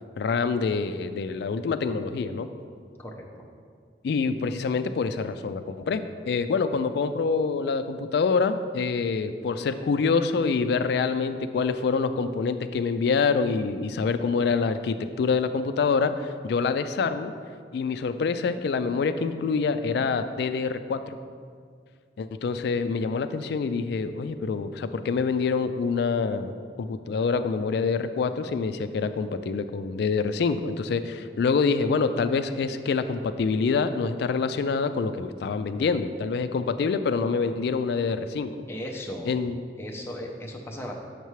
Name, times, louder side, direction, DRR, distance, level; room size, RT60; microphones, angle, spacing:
voice 1, 0.2-2.5 4.0-17.3 17.7-21.2 22.2-26.5 26.8-38.7 39.2-39.6, left 5 dB, 65° left, 10 dB, 0.3 m, -26 dB
voice 2, 3.0-3.5 38.7-39.3 39.8-40.9, equal, 15° left, -1 dB, 0.6 m, -37 dB
6.8 x 6.5 x 3.1 m, 2.1 s
head